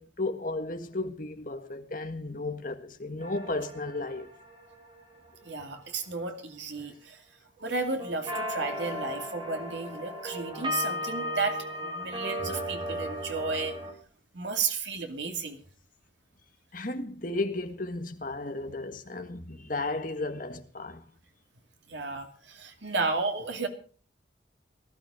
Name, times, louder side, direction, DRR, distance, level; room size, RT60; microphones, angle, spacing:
voice 1, 0.0-4.3 16.7-21.0, left 2 dB, 45° left, 1.8 m, -34 dB
sound 1, 3.2-5.3 8.0-13.9, left 1 dB, 25° right, 6.0 m, -35 dB
voice 2, 5.4-7.2 7.6-13.8 14.3-15.6 21.9-23.7, right 4 dB, 75° right, 2.6 m, -33 dB
18.5 x 12.5 x 5.1 m
head